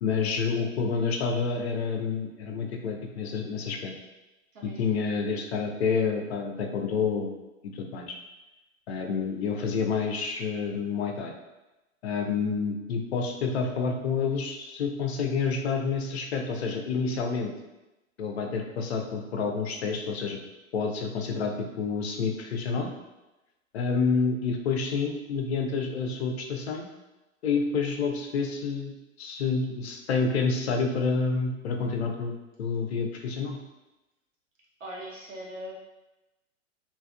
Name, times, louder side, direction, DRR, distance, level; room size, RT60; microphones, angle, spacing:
voice 1, 0.0-3.9 4.6-7.3 7.7-8.1 8.9-11.3 12.0-17.5 18.2-20.4 20.7-22.9 23.7-26.9 27.4-28.9 29.2-33.6, left 5 dB, 55° left, 3 dB, 0.5 m, -28 dB
voice 2, 4.5-5.2 34.8-35.7, equal, 70° right, -5 dB, 1.1 m, -41 dB
3.4 x 2.5 x 2.3 m, 1.0 s
figure-of-eight pair, 100°, 39 cm